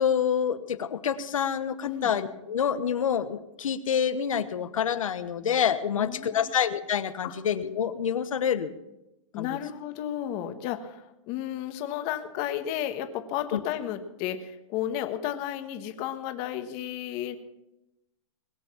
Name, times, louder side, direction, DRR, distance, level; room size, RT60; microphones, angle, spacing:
voice 1, 0.0-8.7 9.4-9.5, left 8 dB, 85° left, 12 dB, 1.2 m, -27 dB
voice 2, 5.9-6.5 7.2-7.3 9.3-17.4, left 11 dB, 35° left, 8 dB, 1.4 m, -33 dB
21.0 x 7.1 x 7.3 m, 0.91 s
hypercardioid pair, 150°, 17 cm